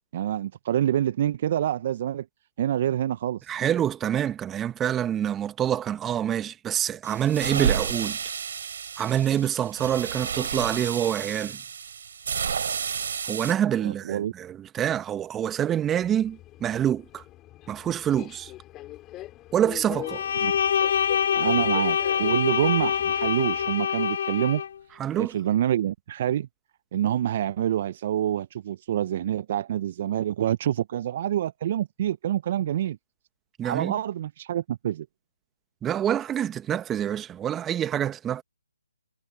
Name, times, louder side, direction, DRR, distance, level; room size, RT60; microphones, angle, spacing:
voice 1, 0.1-2.3 2.6-3.5 13.8-14.3 20.4-20.5 21.3-24.6 25.1-26.5 26.9-33.0 33.6-35.1, right 11 dB, 40° right, 0.6 m, -26 dB
voice 2, 3.5-8.2 9.0-11.6 13.3-17.2 17.7-18.5 19.5-20.2 25.0-25.3 33.6-34.0 35.8-38.4, right 10 dB, 10° right, 1.5 m, -26 dB
sound 1, 7.1-13.5, right 7 dB, 55° right, 4.2 m, -31 dB
Subway metro underground, 15.8-23.8, left 15 dB, 15° left, 3.3 m, -43 dB
Bowed string instrument, 20.0-24.7, left 8 dB, 45° left, 1.9 m, -25 dB
figure-of-eight pair, 145°, 0 cm